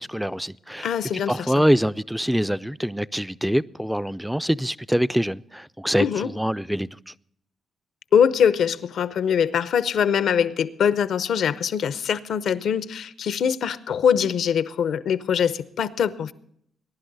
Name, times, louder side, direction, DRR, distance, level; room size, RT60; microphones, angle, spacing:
voice 1, 0.0-7.1, equal, 5° right, 0.4 m, -25 dB
voice 2, 0.8-1.3 6.0-6.3 8.1-16.3, left 8 dB, 75° left, 0.7 m, -22 dB
21.0 x 11.0 x 4.0 m
supercardioid pair, 60°, 0 cm